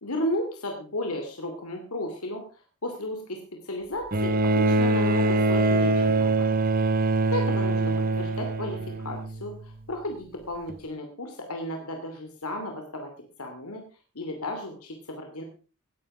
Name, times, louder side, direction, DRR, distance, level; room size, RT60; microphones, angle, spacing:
voice 1, 0.0-2.5 2.8-6.6 7.2-13.1 13.4-13.8 14.1-15.4, left 1 dB, 90° left, 4 dB, 2.7 m, -34 dB
Bowed string instrument, 4.1-9.6 10.7-10.8, right 2 dB, 40° right, 0.8 m, -23 dB
18.0 x 9.8 x 4.9 m, 0.36 s
head